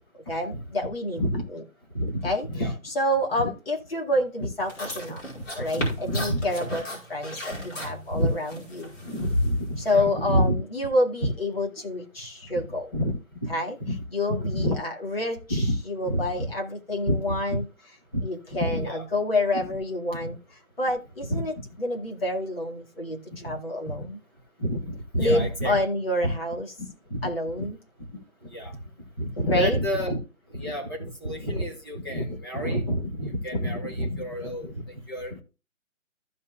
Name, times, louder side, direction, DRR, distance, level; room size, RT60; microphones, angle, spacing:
voice 1, 0.3-1.2 1.5-1.6 2.2-2.5 2.8-5.2 5.5-8.9 9.8-12.9 13.5-13.8 14.1-17.7 18.2-20.4 20.8-24.2 25.2-26.7 27.2-27.8 29.5-29.8 32.1-32.2, left 1 dB, 45° left, 0 dB, 2.2 m, -28 dB
voice 2, 1.9-2.7 3.4-3.5 5.7-6.4 8.1-8.3 9.0-10.5 11.2-11.3 12.9-13.5 13.8-14.0 14.4-14.8 15.5-15.7 16.0-16.5 17.1-17.6 18.5-19.0 19.5-19.6 20.2-20.3 21.3-21.4 23.4-23.5 24.6-24.8 25.1-25.8 26.2-26.3 26.8-27.3 27.6-27.7 28.1-28.2 28.5-28.7 29.2-30.2 30.5-35.4, equal, 15° left, -1 dB, 1.3 m, -28 dB
sound 1, 4.6-9.9, left 1 dB, 60° left, 5.2 m, -33 dB
15.0 x 5.6 x 2.4 m, 0.31 s
hypercardioid pair, 180°, 41 cm